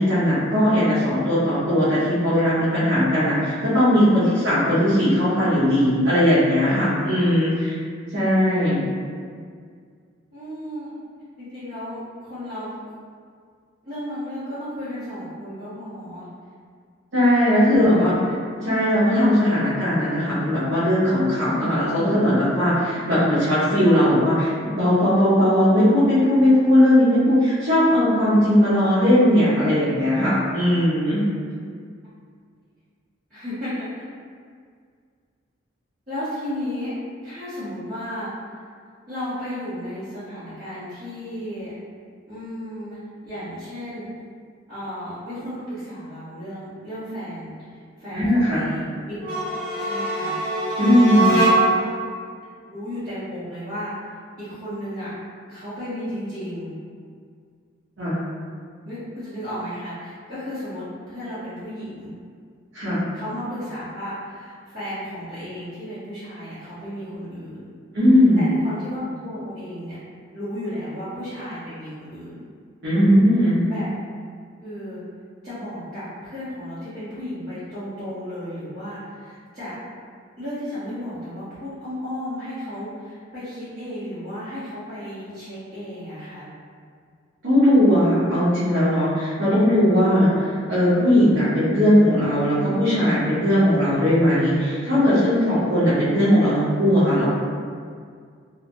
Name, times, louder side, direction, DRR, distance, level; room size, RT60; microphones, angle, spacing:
voice 1, 0.0-7.8 8.1-8.9 17.1-18.1 18.6-31.2 48.1-48.6 50.8-51.4 58.0-58.2 62.7-63.0 67.9-68.5 72.8-73.6 87.4-97.2, equal, 60° right, -14 dB, 0.8 m, -18 dB
voice 2, 10.3-10.9 11.4-12.8 13.8-16.3 17.5-18.1 33.3-33.7 36.1-36.9 37.2-38.3 39.1-41.7 42.3-43.0 43.2-44.1 44.7-47.5 48.0-49.2 49.5-50.3 50.7-50.8 51.1-51.8 52.7-53.9 54.4-55.1 55.5-56.7 58.8-62.1 63.1-67.7 68.3-70.0 70.3-72.4 73.7-73.9 74.6-75.0 75.4-79.7 80.4-86.5, equal, 40° right, -19 dB, 1.1 m, -34 dB
sound 1, 49.2-51.9, right 2 dB, 10° right, 0.8 m, -22 dB
3.0 x 2.0 x 2.6 m, 2.1 s
head